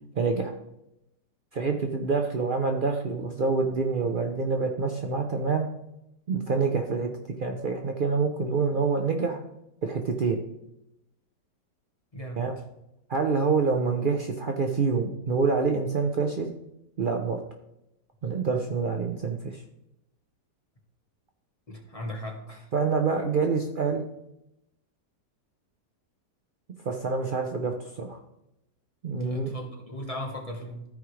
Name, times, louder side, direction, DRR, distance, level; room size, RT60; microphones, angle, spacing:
voice 1, 0.2-0.5 1.5-5.7 6.3-7.1 7.4-9.4 9.8-10.4 12.4-12.5 13.1-16.5 17.0-17.4 18.2-19.6 22.7-24.0 26.8-28.2 29.0-29.5, right 4 dB, 85° right, 3 dB, 0.4 m, -26 dB
voice 2, 12.1-12.4 21.7-22.7 29.2-30.9, equal, 25° left, 1 dB, 1.1 m, -37 dB
14.0 x 4.9 x 3.2 m, 0.87 s
omnidirectional pair, 1.8 m